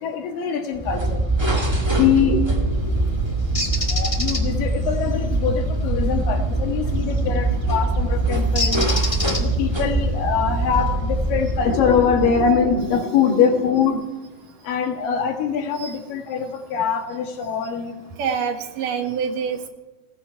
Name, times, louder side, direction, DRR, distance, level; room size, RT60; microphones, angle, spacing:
voice 1, 0.0-1.2 1.7-3.1 3.9-8.9 9.4-14.0 14.7-17.9, left 6 dB, 80° left, 4 dB, 3.3 m, -23 dB
sound 1, 0.7-12.9, right 2 dB, 35° right, 0.4 m, -23 dB
Bird, 3.5-4.4 7.0-7.3 8.5-9.7, left 2 dB, 25° left, 0.7 m, -26 dB
voice 2, 18.2-19.7, right 6 dB, 75° right, 6 dB, 2.9 m, -26 dB
18.0 x 14.5 x 4.6 m, 1.1 s
omnidirectional pair, 4.0 m